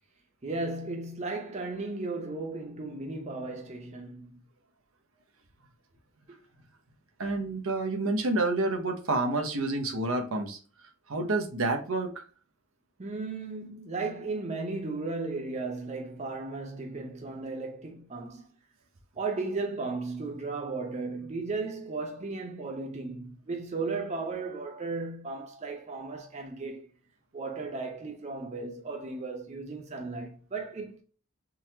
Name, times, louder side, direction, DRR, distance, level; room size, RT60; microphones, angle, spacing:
voice 1, 0.4-4.4 6.3-6.4 13.0-18.5 19.2-26.9 27.3-31.0, right 3 dB, 30° right, 0.6 m, -35 dB
voice 2, 7.2-10.6 11.1-12.2, right 2 dB, 75° right, 0.8 m, -29 dB
3.8 x 2.8 x 2.9 m
head